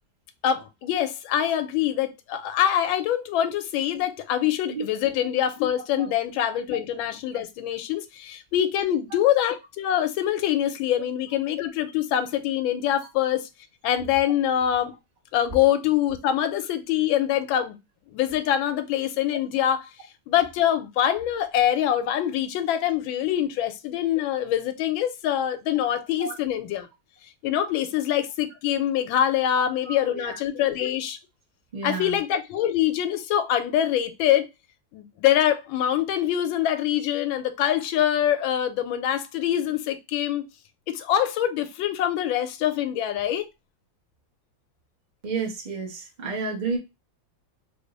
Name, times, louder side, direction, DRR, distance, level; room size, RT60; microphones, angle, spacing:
voice 1, 0.4-13.5 13.8-14.9 15.3-17.8 18.1-19.9 20.3-26.9 27.4-31.2 31.8-34.5 34.9-40.4 40.9-43.5, left 11 dB, 85° left, 1.3 m, -24 dB
voice 2, 29.6-30.7 31.7-32.2 45.2-46.8, right 4 dB, 55° right, 0.5 m, -31 dB
3.4 x 2.0 x 3.8 m
omnidirectional pair, 2.1 m